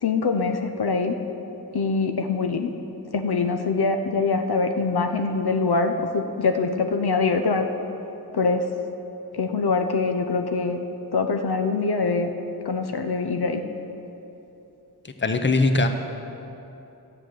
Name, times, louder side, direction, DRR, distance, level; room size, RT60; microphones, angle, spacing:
voice 1, 0.0-1.2 1.7-2.7 3.1-7.7 8.3-8.6 9.3-10.8 11.1-12.3 12.6-13.6, left 4 dB, 75° left, 5 dB, 0.7 m, -24 dB
voice 2, 15.0-15.9, left 3 dB, 30° left, 6 dB, 0.8 m, -21 dB
11.0 x 7.3 x 6.5 m, 3.0 s
wide cardioid pair, 60°, 39 cm